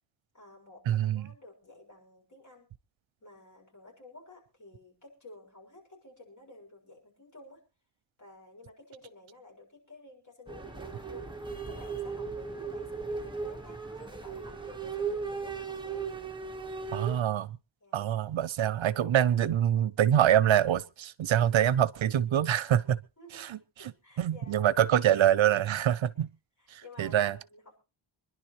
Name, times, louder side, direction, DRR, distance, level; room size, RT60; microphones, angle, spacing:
voice 1, 0.3-2.7 3.2-7.6 8.2-11.3 11.7-16.0 16.6-16.9 17.8-18.0 23.2-24.5 26.1-26.2 26.6-27.8, left 2 dB, 40° left, 6.5 m, -53 dB
voice 2, 0.9-1.3 16.9-17.6 17.9-23.0 23.4-23.9 24.2-26.3 26.7-27.4, right 10 dB, 75° right, 0.7 m, -25 dB
sound 1, 10.5-17.2, right 5 dB, 10° right, 1.4 m, -37 dB
26.0 x 11.0 x 3.1 m
wide cardioid pair, 160°, 47 cm